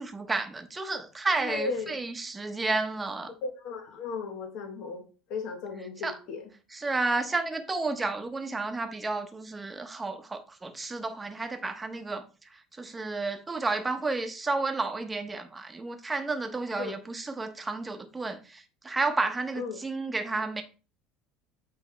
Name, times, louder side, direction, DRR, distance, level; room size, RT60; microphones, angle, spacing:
voice 1, 0.0-3.3 6.0-6.1 6.7-20.6, right 3 dB, 15° right, 1.0 m, -31 dB
voice 2, 1.4-2.0 3.4-5.0 5.3-6.5 16.8-16.9 19.6-19.8, left 4 dB, 60° left, 1.2 m, -35 dB
8.3 x 3.4 x 3.3 m
supercardioid pair, 105°, 0 cm